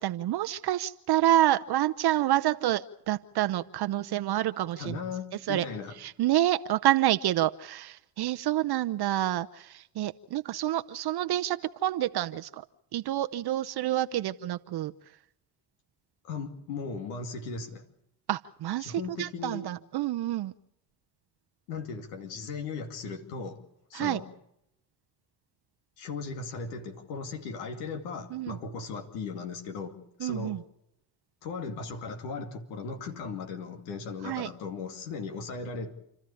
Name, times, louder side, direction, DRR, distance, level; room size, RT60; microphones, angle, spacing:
voice 1, 0.0-5.0 5.5-5.7 6.0-12.6 12.9-14.9 18.3-20.5 23.9-24.2 28.3-28.6 30.2-30.6 34.2-34.5, right 13 dB, 55° right, 11 dB, 0.9 m, -28 dB
voice 2, 4.8-6.0 16.2-17.8 18.8-19.7 21.7-23.6 23.9-24.3 26.0-30.6 31.4-35.9, left 4 dB, 80° left, 6 dB, 2.6 m, -37 dB
29.5 x 13.0 x 8.5 m, 0.79 s
hypercardioid pair, 60°, 46 cm